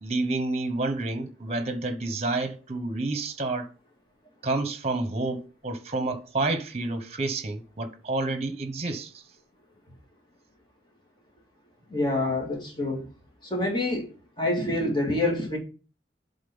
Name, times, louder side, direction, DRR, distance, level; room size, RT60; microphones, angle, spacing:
voice 1, 0.0-3.7 4.4-9.2, right 2 dB, 40° right, 1.1 m, -29 dB
voice 2, 11.9-13.1 13.4-14.1 14.4-15.6, left 1 dB, 25° left, 2.5 m, -26 dB
7.4 x 4.0 x 5.4 m
head